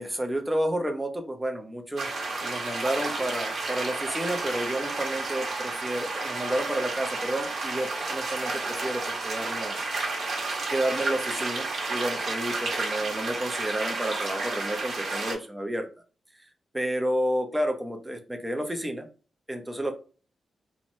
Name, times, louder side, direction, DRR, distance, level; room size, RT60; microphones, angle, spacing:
voice 1, 0.0-2.1 2.4-9.8 10.7-15.9 16.7-19.1 19.5-19.9, right 1 dB, 10° right, 4 dB, 0.6 m, -30 dB
sound 1, 2.0-15.3, right 3 dB, 60° right, 0.9 m, -31 dB
2.9 x 2.1 x 2.5 m, 0.36 s
wide cardioid pair, 115°, 0 cm